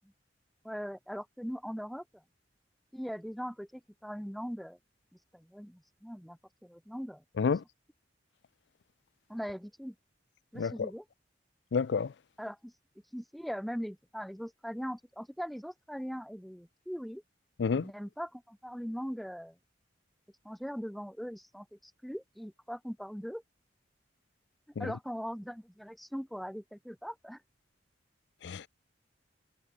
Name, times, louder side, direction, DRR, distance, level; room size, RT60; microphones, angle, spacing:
voice 1, 0.6-2.2 2.9-4.8 5.3-7.2 9.3-9.9 10.5-11.0 12.4-12.7 13.1-17.2 17.7-19.6 20.4-23.4 24.8-27.4, equal, ahead, 2.3 m, -40 dB
voice 2, 11.7-12.1 17.6-17.9 24.8-24.9 28.4-28.7, left 5 dB, 65° left, 0.4 m, -29 dB
head